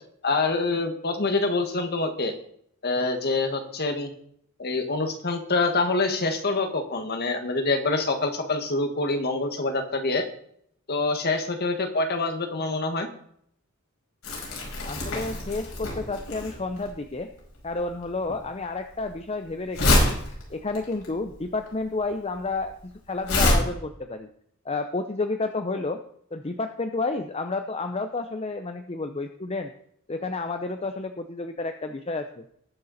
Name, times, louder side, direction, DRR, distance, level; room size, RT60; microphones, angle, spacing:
voice 1, 0.2-2.3 2.8-4.1 4.6-10.2 10.9-13.1, left 3 dB, 50° left, 5 dB, 1.8 m, -26 dB
Crumpling crinkling, 14.2-23.5, left 1 dB, 85° left, 5.4 m, -27 dB
voice 2, 14.8-17.3 17.6-20.2 20.5-24.3 24.6-26.0 26.3-29.7 30.1-32.4, left 3 dB, 30° left, 7 dB, 0.7 m, -31 dB
19.5 x 6.8 x 4.2 m, 0.68 s
head